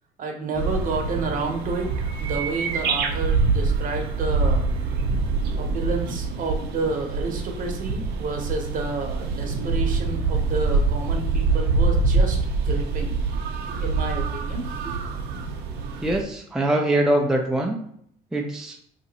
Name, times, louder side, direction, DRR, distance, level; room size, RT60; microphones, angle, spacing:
voice 1, 0.2-4.6 5.6-13.2 13.7-15.0, right 3 dB, 55° right, 2 dB, 0.9 m, -30 dB
sound 1, 0.5-16.2, right 3 dB, 75° right, 0.6 m, -25 dB
voice 2, 16.0-17.8 18.3-18.8, right 1 dB, 5° right, 0 dB, 0.4 m, -23 dB
2.8 x 2.5 x 4.1 m, 0.67 s
cardioid pair, 110°, 17 cm